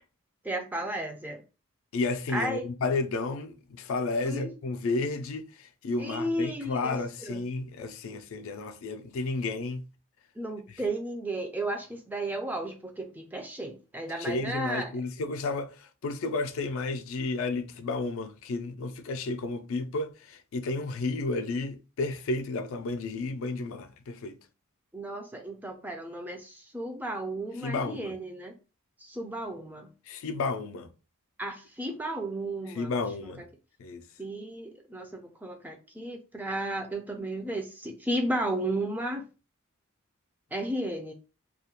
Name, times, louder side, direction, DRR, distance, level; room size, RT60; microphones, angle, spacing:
voice 1, 0.4-1.4 2.3-2.6 4.2-4.5 6.0-7.4 10.4-14.9 24.9-28.5 29.0-29.9 31.4-32.9 33.2-33.5 34.2-39.2 40.5-41.1, right 1 dB, 10° right, 0.3 m, -34 dB
voice 2, 1.9-9.8 14.2-24.4 27.6-28.2 30.1-30.9 32.7-33.4 33.8-34.0, left 3 dB, 65° left, 0.4 m, -32 dB
2.3 x 2.1 x 2.8 m
head